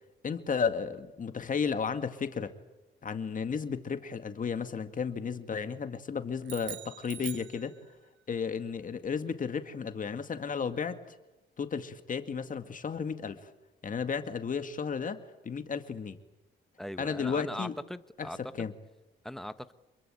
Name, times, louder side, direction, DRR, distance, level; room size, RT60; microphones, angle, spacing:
voice 1, 0.2-2.5 3.0-7.8 8.3-11.2 11.6-13.5 13.8-15.2 15.4-16.2 17.0-17.7 18.2-18.7, left 6 dB, 40° left, 9 dB, 2.1 m, -33 dB
sound 1, 6.4-8.2, right 11 dB, 70° right, 1.3 m, -44 dB
voice 2, 16.8-18.7 19.2-19.7, equal, ahead, 12 dB, 1.2 m, -40 dB
27.5 x 22.0 x 9.0 m, 0.98 s
cardioid pair, 90°, 20 cm